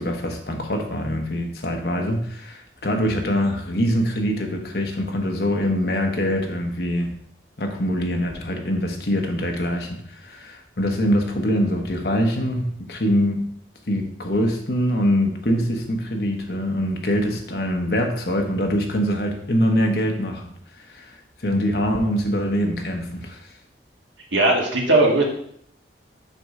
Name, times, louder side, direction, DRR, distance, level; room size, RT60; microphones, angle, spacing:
voice 1, 0.0-7.2 7.6-13.4 13.9-20.5 20.9-23.4, equal, 60° left, 2 dB, 1.1 m, -24 dB
voice 2, 24.3-25.2, right 2 dB, 85° right, -1 dB, 1.6 m, -18 dB
6.4 x 3.7 x 5.5 m, 0.67 s
head